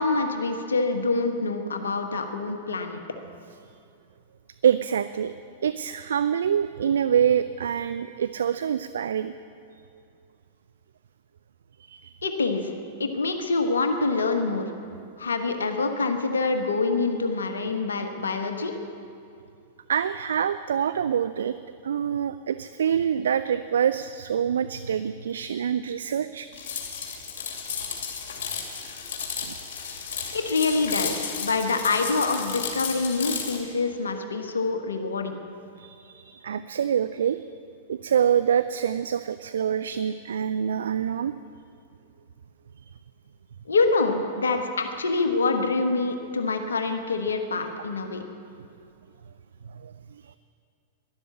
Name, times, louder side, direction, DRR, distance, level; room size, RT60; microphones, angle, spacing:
voice 1, 0.0-3.0 12.2-12.7 13.0-14.7 15.2-18.7 30.3-35.4 43.7-48.2, left 3 dB, 70° left, 6 dB, 1.2 m, -26 dB
voice 2, 4.6-5.3 5.6-9.3 11.9-12.1 19.9-21.6 21.8-26.5 29.4-29.5 35.8-37.5 37.9-41.3 49.7-49.9 50.2-50.3, right 8 dB, 65° right, 12 dB, 0.4 m, -25 dB
sound 1, 26.5-33.6, left 6 dB, 55° left, 2.6 m, -33 dB
13.0 x 11.5 x 8.6 m, 2.5 s
figure-of-eight pair, 95°, 0 cm